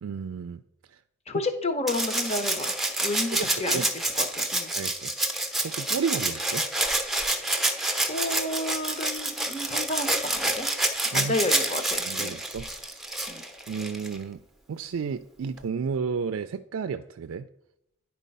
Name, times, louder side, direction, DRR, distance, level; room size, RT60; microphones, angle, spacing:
voice 1, 0.0-0.6 3.3-3.9 4.7-5.4 5.6-6.7 11.1-11.3 12.0-13.0 13.7-14.4 14.7-17.5, right 6 dB, 85° right, 9 dB, 0.4 m, -32 dB
voice 2, 1.3-4.7 8.1-10.7 11.1-12.4 13.3-13.4, left 2 dB, 30° left, 8 dB, 0.9 m, -31 dB
Rattle (instrument), 1.9-14.2 15.6-15.7, right 1 dB, ahead, 0.7 m, -28 dB
10.0 x 4.5 x 5.4 m, 0.79 s
head